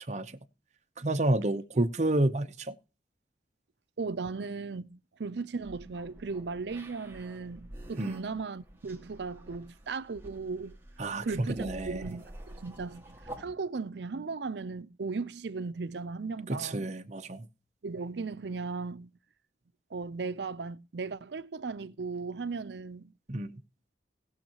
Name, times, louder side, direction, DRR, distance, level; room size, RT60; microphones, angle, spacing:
voice 1, 1.0-2.7 8.0-8.2 11.0-12.0 16.5-17.5 23.3-23.6, right 1 dB, 40° right, 0.8 m, -30 dB
voice 2, 4.0-10.8 11.2-16.9 17.8-19.1 19.9-23.1, right 4 dB, 75° right, 0.6 m, -37 dB
sound 1, 5.6-13.4, right 1 dB, 15° right, 1.8 m, -48 dB
19.0 x 6.5 x 2.9 m
head